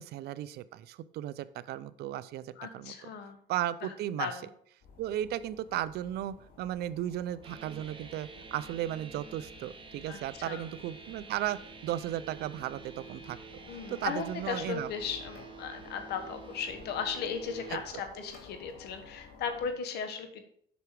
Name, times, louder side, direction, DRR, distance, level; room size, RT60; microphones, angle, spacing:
voice 1, 0.0-2.9 3.5-4.3 5.0-13.4 13.9-14.9 17.7-17.8, right 12 dB, 70° right, 16 dB, 0.5 m, -35 dB
voice 2, 2.6-3.4 3.8-3.9 4.2-4.5 10.1-10.7 13.7-20.4, left 6 dB, 75° left, 8 dB, 1.4 m, -37 dB
sound 1, 4.8-19.7, left 3 dB, 60° left, 2.2 m, -53 dB
sound 2, 7.4-17.9, right 5 dB, 30° right, 1.2 m, -49 dB
8.1 x 6.0 x 4.7 m, 0.63 s
cardioid pair, 110°, 17 cm